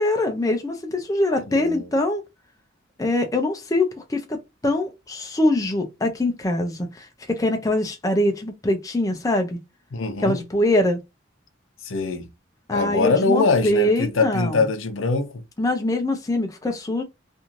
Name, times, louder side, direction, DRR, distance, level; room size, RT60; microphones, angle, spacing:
voice 1, 0.0-2.2 3.0-4.4 4.6-9.6 10.2-11.0 12.7-14.6 15.6-17.0, left 1 dB, 15° left, 0.4 m, -23 dB
voice 2, 1.4-1.9 9.9-10.4 11.8-12.3 12.7-15.4, left 3 dB, 80° left, 0.6 m, -23 dB
3.0 x 2.5 x 2.5 m
head